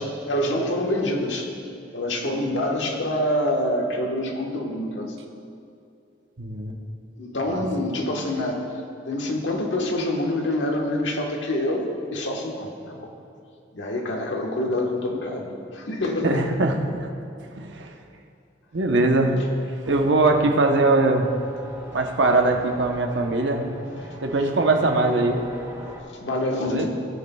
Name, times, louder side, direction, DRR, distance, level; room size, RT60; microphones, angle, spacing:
voice 1, 0.0-1.5 1.9-5.1 7.2-8.6 9.0-13.1 13.7-16.4 26.1-26.9, left 1 dB, 90° left, 1 dB, 1.4 m, -26 dB
voice 2, 6.4-6.8 7.5-7.6 16.2-17.1 17.5-17.9 18.7-19.4 19.9-21.3 21.9-23.7 24.2-25.4 26.7-26.9, right 2 dB, 85° right, 3 dB, 0.9 m, -21 dB
sound 1, 19.8-26.0, equal, 15° right, 1.6 m, -42 dB
16.5 x 9.4 x 2.3 m, 2.5 s
head